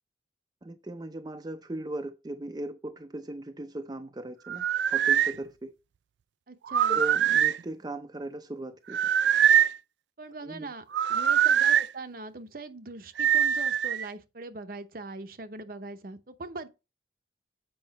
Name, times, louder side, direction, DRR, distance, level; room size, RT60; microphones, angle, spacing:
voice 1, 0.6-5.7 6.9-9.1 10.4-10.7, right 1 dB, 25° right, 0.5 m, -38 dB
sound 1, 4.5-5.3 6.7-7.6 8.9-9.8 10.9-11.9 13.2-14.1, right 9 dB, 80° right, 0.4 m, -23 dB
voice 2, 6.5-7.0 10.2-16.7, right 3 dB, 55° right, 0.8 m, -41 dB
7.8 x 5.2 x 4.0 m
head